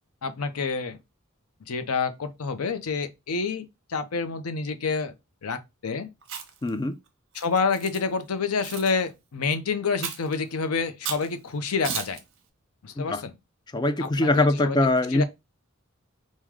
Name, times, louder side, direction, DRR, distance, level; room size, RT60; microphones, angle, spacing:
voice 1, 0.2-1.0 1.7-5.1 5.4-6.1 7.3-12.2 12.8-13.3 14.0-14.8 15.1-15.2, left 5 dB, 90° left, 0.6 m, -28 dB
Chewing mastication, 6.2-6.7 7.3-8.0 8.6-8.9 10.0-10.3 11.0-11.3 11.8-12.2, right 7 dB, 60° right, 0.8 m, -34 dB
voice 2, 6.6-7.0 13.0-13.2 13.7-15.2, left 2 dB, 20° left, 0.3 m, -23 dB
4.6 x 2.1 x 3.6 m
head